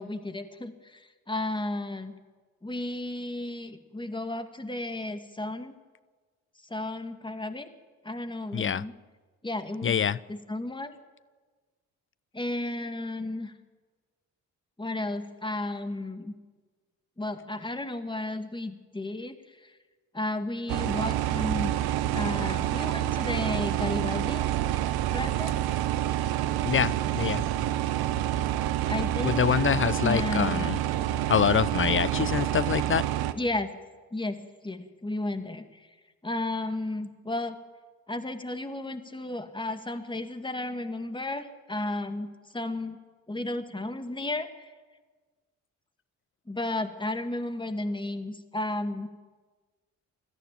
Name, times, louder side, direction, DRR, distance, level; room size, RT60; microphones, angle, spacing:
voice 1, 0.0-2.1 2.6-5.7 6.7-7.7 8.0-8.9 9.4-10.0 10.3-11.0 12.3-13.5 14.8-16.3 17.2-19.8 20.1-21.8 22.1-24.5 25.1-25.6 28.9-29.5 30.0-30.7 33.4-33.7 34.1-35.9 36.2-37.6 38.1-43.0 43.3-44.7 46.5-49.1, left 2 dB, 10° left, 7 dB, 2.3 m, -33 dB
voice 2, 8.5-8.8 9.8-10.2 26.6-27.4 29.2-30.8 31.3-33.0, left 7 dB, 30° left, 19 dB, 0.6 m, -25 dB
sound 1, 20.7-33.3, right 13 dB, 65° right, 1.1 m, -28 dB
sound 2, 26.6-32.9, right 3 dB, 45° right, 4.1 m, -43 dB
22.5 x 14.0 x 8.9 m, 1.4 s
hypercardioid pair, 45°, 40 cm